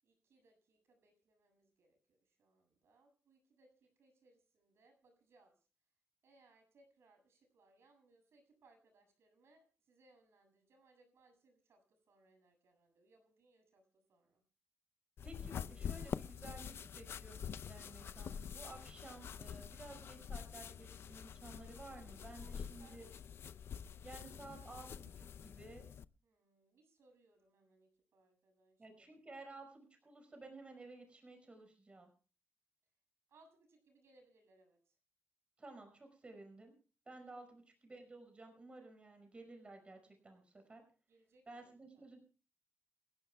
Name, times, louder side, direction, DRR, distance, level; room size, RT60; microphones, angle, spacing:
voice 1, 0.0-5.7 6.2-14.4 22.4-23.2 26.2-29.1 29.4-29.5 33.3-35.0 41.1-42.0, right 2 dB, 75° right, 5 dB, 7.6 m, -70 dB
sound 1, 15.2-26.0, left 7 dB, 65° left, 0.6 m, -46 dB
voice 2, 15.2-23.1 24.0-25.8 28.8-32.1 35.6-36.8 37.1-40.8 41.5-42.2, right 2 dB, 25° right, 5 dB, 5.4 m, -54 dB
28.5 x 12.5 x 2.3 m, 0.37 s
wide cardioid pair, 135°, 4 cm